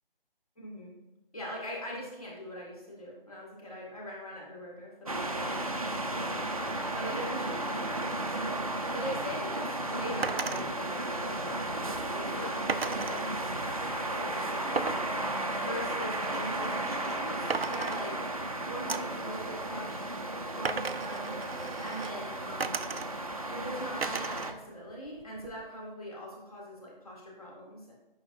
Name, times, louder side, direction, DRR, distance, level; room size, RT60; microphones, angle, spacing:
voice 1, 0.6-0.9 1.3-5.6 6.1-6.4 6.9-8.6 8.9-13.5 14.2-15.0 15.6-18.1 18.7-20.1 20.5-21.3 21.8-22.8 23.5-27.9, equal, 40° left, -3 dB, 2.0 m, -41 dB
sound 1, 5.1-24.5, right 1 dB, 40° right, 0.6 m, -34 dB
sound 2, 10.2-10.7 12.7-13.3 14.8-17.2 17.5-18.5 18.9-19.2 20.6-22.1 22.6-23.3 24.0-24.5 24.9-25.7, right 5 dB, 85° right, 0.5 m, -36 dB
9.5 x 5.4 x 2.6 m, 1.0 s
figure-of-eight pair, 165°, 29 cm